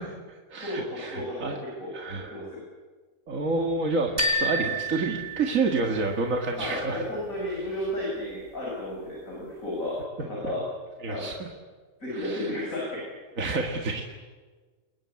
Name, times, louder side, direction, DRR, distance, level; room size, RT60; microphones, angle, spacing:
voice 1, 0.0-1.6 1.9-2.4 3.3-7.0 10.4-10.5 11.0-11.5 12.1-12.6 13.4-14.0, right 3 dB, 70° right, 2 dB, 2.3 m, -29 dB
voice 2, 0.6-1.5 1.8-2.6 6.6-10.6 11.1-11.3 12.0-13.1, left 1 dB, 75° left, -4 dB, 8.0 m, -33 dB
sound 1, 4.2-6.1, equal, 30° right, 4.6 m, -29 dB
28.5 x 21.5 x 8.6 m, 1.4 s
omnidirectional pair, 1.4 m